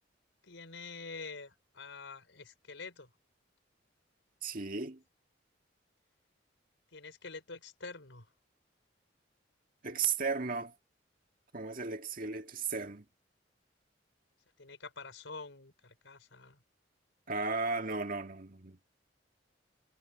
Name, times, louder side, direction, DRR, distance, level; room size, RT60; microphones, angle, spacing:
voice 1, 0.4-3.1 6.9-8.3 14.6-16.6, left 4 dB, 90° left, 4.2 m, -47 dB
voice 2, 4.4-5.0 9.8-10.7 11.5-13.0 17.3-18.8, right 4 dB, 50° right, 1.9 m, -35 dB
head